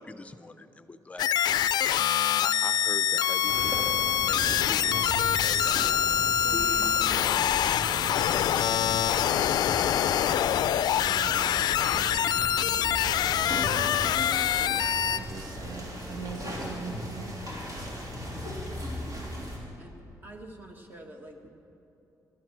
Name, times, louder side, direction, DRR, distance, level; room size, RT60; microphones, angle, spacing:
voice 1, 0.0-7.8, left 3 dB, 20° left, 10 dB, 0.6 m, -44 dB
sound 1, 1.2-15.2, left 10 dB, 80° left, 0.4 m, -25 dB
sound 2, 3.5-19.6, equal, 50° right, 3.5 m, -37 dB
voice 2, 8.0-14.8 15.1-17.4 17.7-17.9, right 3 dB, 80° right, 3 dB, 1.7 m, -44 dB
voice 3, 19.7-21.5, right 1 dB, 30° right, 2 dB, 1.6 m, -47 dB
19.0 x 12.5 x 4.7 m, 3.0 s
cardioid pair, 120°, 7 cm